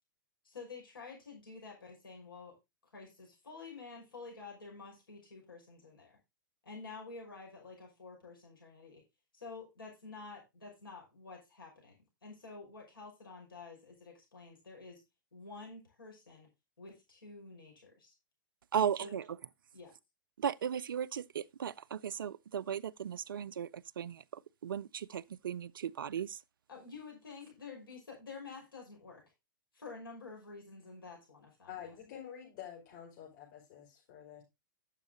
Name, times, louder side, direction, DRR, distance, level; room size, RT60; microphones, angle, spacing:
voice 1, 0.4-2.6 2.9-6.2 6.6-9.0 9.3-12.0 12.2-15.0 15.3-16.5 16.8-18.1 18.7-19.2 19.7-19.9 26.7-29.2 29.7-31.9, left 4 dB, 90° left, 5.8 m, -49 dB
voice 2, 18.7-19.2 20.4-26.4, right 8 dB, 80° right, 0.5 m, -36 dB
voice 3, 31.7-34.4, left 9 dB, 60° left, 5.4 m, -48 dB
10.0 x 7.4 x 3.8 m
hypercardioid pair, 110°, 11 cm